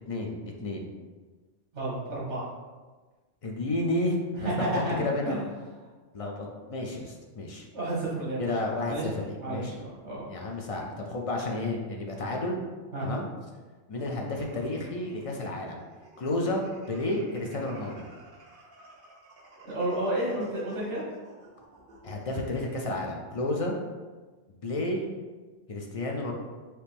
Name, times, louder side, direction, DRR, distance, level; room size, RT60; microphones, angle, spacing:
voice 1, 0.1-0.9 3.4-5.4 6.1-7.7 8.4-8.9 9.2-9.7 10.3-12.6 13.0-13.3 13.9-15.8 16.2-18.0 22.0-23.7 24.6-25.1 25.7-26.3, left 2 dB, 55° left, 0 dB, 0.4 m, -31 dB
voice 2, 1.7-2.5 4.3-5.0 5.2-5.4 7.7-8.5 8.9-10.3 12.9-13.1 19.6-21.0, right 1 dB, 70° right, -6 dB, 1.8 m, -31 dB
sound 1, 14.2-22.9, right 2 dB, 50° right, 0.8 m, -52 dB
4.5 x 2.9 x 3.4 m, 1.3 s
omnidirectional pair, 1.3 m